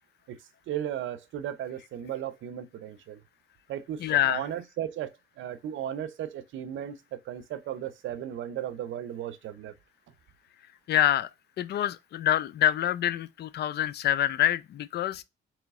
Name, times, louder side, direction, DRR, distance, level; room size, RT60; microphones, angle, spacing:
voice 1, 0.7-3.2 3.7-4.0 4.3-5.1 5.4-7.0 7.3-9.7, right 10 dB, 75° right, 0.6 m, -35 dB
voice 2, 4.0-4.4 10.9-11.3 11.6-15.2, left 12 dB, 55° left, 0.4 m, -26 dB
3.9 x 3.1 x 3.5 m
cardioid pair, 90°, 20 cm